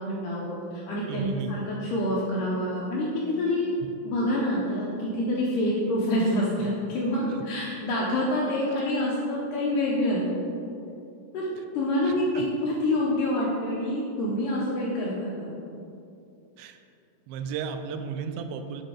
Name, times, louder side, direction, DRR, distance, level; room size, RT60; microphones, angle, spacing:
voice 1, 0.0-3.7 4.0-10.2 11.3-15.5, left 1 dB, 85° left, -5 dB, 1.9 m, -27 dB
voice 2, 1.1-1.5 7.3-7.4 11.6-11.7 12.0-12.5 16.6-16.8 17.3-18.8, right 7 dB, 85° right, 7 dB, 2.4 m, -34 dB
7.9 x 4.1 x 4.9 m, 2.6 s
omnidirectional pair, 4.7 m